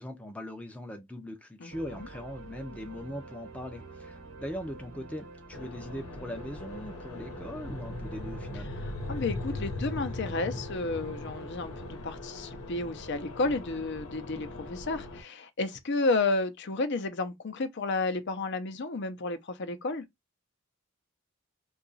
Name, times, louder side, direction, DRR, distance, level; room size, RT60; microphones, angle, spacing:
voice 1, 0.0-8.7, equal, 5° left, 0.5 m, -40 dB
voice 2, 1.6-2.1 9.1-20.0, left 3 dB, 55° left, 0.6 m, -32 dB
sound 1, 1.7-11.9, right 2 dB, 65° right, 1.0 m, -47 dB
sound 2, 5.5-15.2, left 2 dB, 85° left, 0.9 m, -39 dB
2.9 x 2.3 x 3.9 m
head